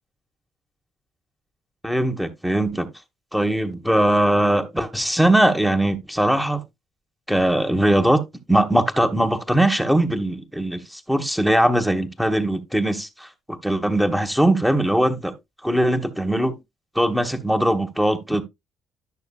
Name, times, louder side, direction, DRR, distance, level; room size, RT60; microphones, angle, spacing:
voice 1, 1.8-2.9 3.3-6.6 7.3-8.2 8.5-15.3 15.6-16.6 16.9-18.4, right 1 dB, ahead, 1.5 m, -20 dB
11.0 x 6.4 x 2.4 m
hypercardioid pair, 50°, 0 cm